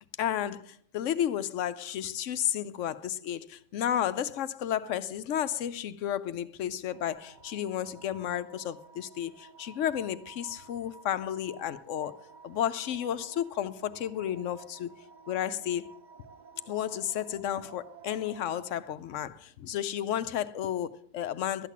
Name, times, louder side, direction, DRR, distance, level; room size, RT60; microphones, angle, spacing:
voice 1, 0.2-14.9 15.3-15.9 16.7-21.7, left 10 dB, 85° left, 1.0 m, -32 dB
sound 1, 6.9-18.7, right 5 dB, 55° right, 0.6 m, -53 dB
12.0 x 8.3 x 7.1 m
omnidirectional pair, 1.3 m